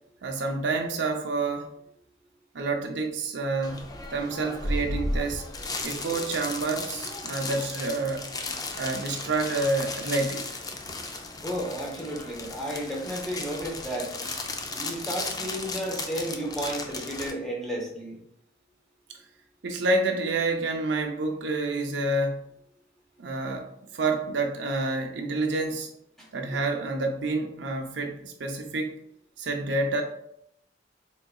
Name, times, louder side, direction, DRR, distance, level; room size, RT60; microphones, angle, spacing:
voice 1, 0.2-1.7 2.5-5.4 5.8-8.3 8.8-10.5 19.6-22.4 23.2-25.9 26.3-28.9 29.4-30.0, right 2 dB, 75° right, 3 dB, 0.6 m, -28 dB
sound 1, 3.6-17.3, left 2 dB, 20° left, 0.4 m, -35 dB
voice 2, 11.4-14.1 14.7-18.2 26.2-26.3, equal, ahead, -3 dB, 0.9 m, -33 dB
3.9 x 3.7 x 2.3 m, 0.72 s
head